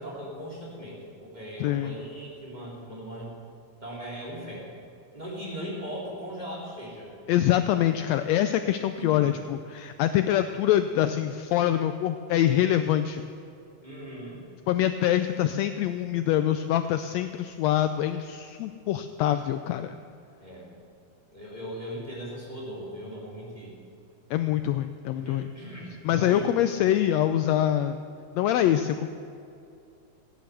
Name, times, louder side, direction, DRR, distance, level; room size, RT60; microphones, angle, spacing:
voice 1, 0.0-3.3 3.8-4.7 5.1-7.1 8.9-9.3 13.8-14.4 20.4-20.7 21.3-23.7 25.1-27.0, equal, 15° right, -5 dB, 3.5 m, -39 dB
voice 2, 1.6-1.9 7.3-13.2 14.7-20.0 24.3-25.5 26.0-28.0 28.3-29.1, left 11 dB, 85° left, 10 dB, 1.5 m, -25 dB
16.5 x 10.0 x 6.9 m, 2.6 s
omnidirectional pair, 3.5 m